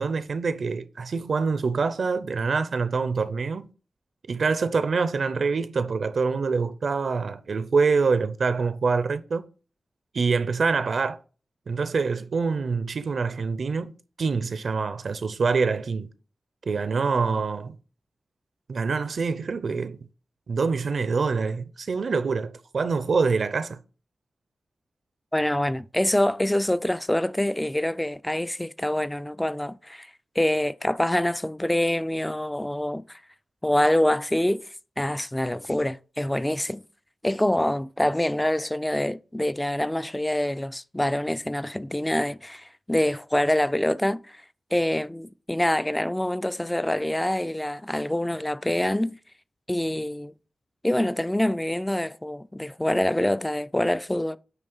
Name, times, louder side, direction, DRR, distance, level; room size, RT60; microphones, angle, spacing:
voice 1, 0.0-3.7 4.3-9.5 10.1-11.2 11.7-13.9 14.2-16.1 16.7-17.8 18.7-20.0 20.5-23.8, right 4 dB, 70° right, 0.6 m, -25 dB
voice 2, 25.3-30.1 30.4-33.2 33.6-34.6 35.0-36.8 37.2-44.4 44.7-49.1 49.7-50.3 50.8-54.4, left 1 dB, 10° left, 0.3 m, -25 dB
9.1 x 3.2 x 5.4 m
wide cardioid pair, 100°, 0 cm